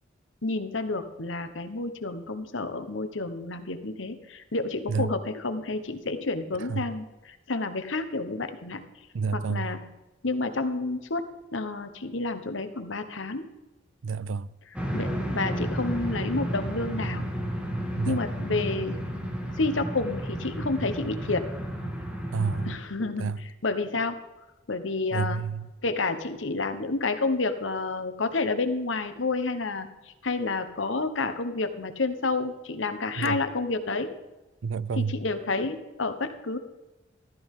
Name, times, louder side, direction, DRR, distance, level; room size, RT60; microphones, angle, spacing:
voice 1, 0.4-8.8 9.3-9.8 10.2-11.3 11.5-13.5 14.9-17.3 18.0-19.0 19.6-21.5 22.7-24.2 24.7-25.4 25.8-34.1 35.0-36.6, left 3 dB, 80° left, 1.2 m, -30 dB
voice 2, 9.1-9.7 14.0-14.5 17.9-18.2 22.3-22.7 23.2-23.4 25.1-25.7 33.2-33.4 34.6-35.2, right 5 dB, 80° right, 0.4 m, -29 dB
sound 1, 14.7-22.7, equal, 5° right, 1.9 m, -32 dB
14.0 x 13.5 x 3.8 m
head